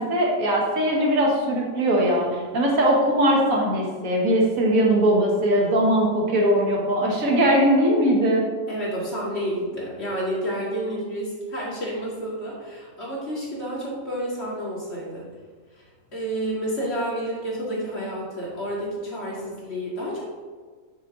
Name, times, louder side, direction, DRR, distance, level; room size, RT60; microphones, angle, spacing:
voice 1, 0.0-8.4, right 1 dB, 75° right, -2 dB, 1.8 m, -20 dB
voice 2, 8.7-15.2 15.7-15.8 16.1-20.2, right 1 dB, 50° left, -6 dB, 2.4 m, -30 dB
6.5 x 6.2 x 3.8 m, 1.5 s
omnidirectional pair, 1.4 m